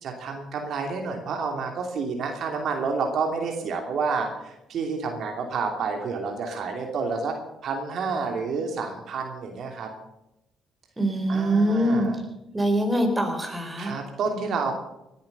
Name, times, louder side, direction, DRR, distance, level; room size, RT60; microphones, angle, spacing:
voice 1, 0.0-7.3 7.6-9.9 11.3-12.2 13.8-14.7, right 4 dB, 65° right, 3 dB, 2.9 m, -29 dB
voice 2, 11.0-12.1 12.5-13.9, right 1 dB, 15° right, 4 dB, 4.6 m, -23 dB
19.0 x 10.5 x 6.9 m, 0.91 s
supercardioid pair, 75°, 0 cm